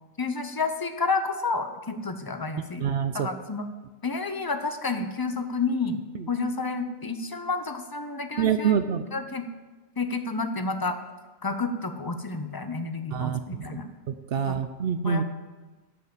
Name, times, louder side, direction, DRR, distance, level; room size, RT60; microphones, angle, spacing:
voice 1, 0.2-2.8 3.1-3.7 4.0-8.7 9.1-9.4 10.0-11.0 11.4-13.9 14.5-14.6 15.0-15.2, left 4 dB, 25° left, 7 dB, 0.7 m, -30 dB
voice 2, 2.8-3.3 8.4-9.0 13.1-13.4 14.1-15.2, right 7 dB, 65° right, 10 dB, 0.8 m, -25 dB
11.5 x 5.6 x 7.7 m, 1.3 s
omnidirectional pair, 1.2 m